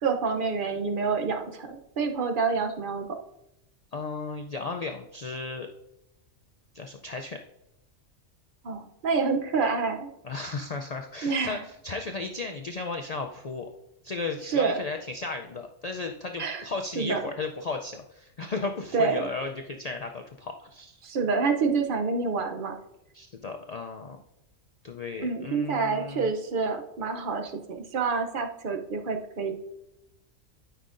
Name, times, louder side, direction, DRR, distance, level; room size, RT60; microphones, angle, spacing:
voice 1, 0.0-3.1 8.6-10.1 11.2-11.6 14.5-14.8 16.4-16.6 16.9-17.2 18.9-19.3 21.0-22.7 25.2-29.5, right 4 dB, 50° right, 5 dB, 0.8 m, -27 dB
voice 2, 3.9-5.7 6.7-7.4 10.2-13.7 14.0-21.0 23.1-24.2 24.8-26.3, left 3 dB, 90° left, 4 dB, 0.3 m, -35 dB
12.5 x 5.6 x 2.5 m, 0.87 s
omnidirectional pair, 1.3 m